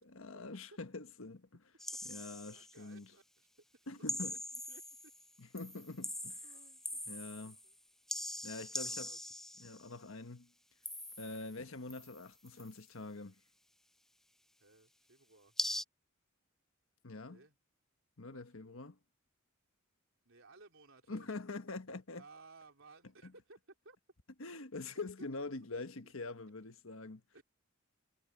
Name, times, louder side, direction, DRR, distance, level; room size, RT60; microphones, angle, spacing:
voice 1, 0.1-1.6 2.0-3.1 3.9-4.4 5.4-6.4 7.1-7.6 8.4-9.1 9.6-10.5 11.2-13.4 17.0-17.4 18.2-19.0 21.1-22.2 23.2-23.3 24.4-27.2, left 3 dB, 70° left, 1.4 m, -45 dB
sound 1, 1.8-2.8 4.1-5.3 5.6-7.7 8.1-9.8 10.8-11.6 11.9-12.8 15.6-15.8, left 1 dB, ahead, 0.4 m, -42 dB
voice 2, 2.5-3.5 3.7-5.3 5.8-5.9 6.4-7.8 8.6-9.3 14.6-15.5 17.3-17.6 18.3-18.8 20.2-21.3 22.2-23.6 23.8-24.0 26.0-26.1 27.3-27.4, right 3 dB, 65° right, 4.1 m, -61 dB
head